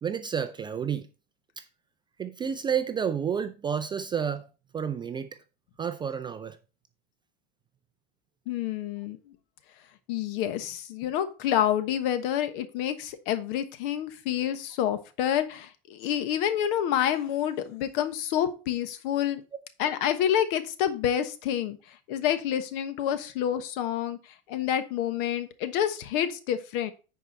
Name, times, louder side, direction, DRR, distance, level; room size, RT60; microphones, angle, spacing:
voice 1, 0.0-1.1 1.6-1.7 2.2-4.5 4.7-5.3 5.8-6.6, right 7 dB, 15° right, 0.3 m, -30 dB
voice 2, 8.5-9.3 10.1-19.4 19.8-26.9, left 10 dB, 60° left, 1.2 m, -28 dB
9.7 x 4.6 x 4.2 m
supercardioid pair, 130°, 31 cm